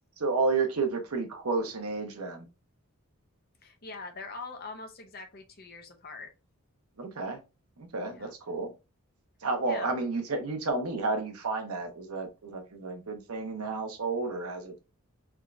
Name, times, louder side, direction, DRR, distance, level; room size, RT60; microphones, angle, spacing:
voice 1, 0.2-2.5 7.0-7.4 7.8-8.7 9.4-14.7, right 3 dB, 85° right, 0.9 m, -31 dB
voice 2, 3.6-6.3 8.0-8.3 9.7-10.0, left 3 dB, 45° left, 0.7 m, -43 dB
3.6 x 2.5 x 3.3 m
head